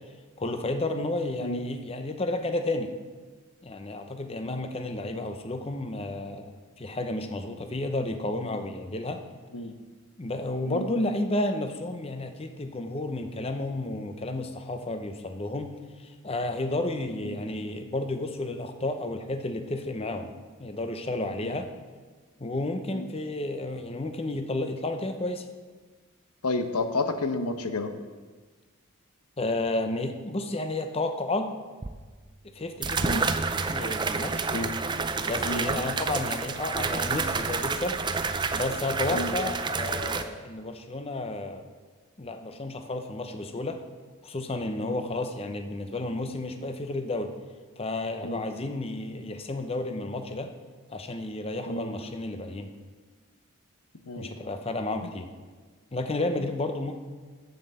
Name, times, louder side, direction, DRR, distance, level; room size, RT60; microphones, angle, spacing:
voice 1, 0.4-2.9 3.6-9.2 10.2-15.7 16.0-20.3 20.6-21.7 22.4-25.4 29.4-31.5 32.4-33.2 33.7-34.4 35.2-38.0 38.5-41.6 42.2-43.8 44.2-47.3 47.8-50.5 50.9-52.7 54.2-55.3 55.9-57.0, left 2 dB, 25° left, 7 dB, 0.7 m, -31 dB
voice 2, 26.4-27.9 33.0-33.2 34.5-34.7 35.5-35.7 39.1-39.3 44.8-45.0 48.2-48.4 51.7-51.9 54.1-54.3, left 2 dB, 90° left, 8 dB, 0.9 m, -30 dB
sound 1, 31.8-31.9 32.8-40.2, right 4 dB, 20° right, 0.4 m, -29 dB
7.8 x 7.7 x 6.7 m, 1.4 s
head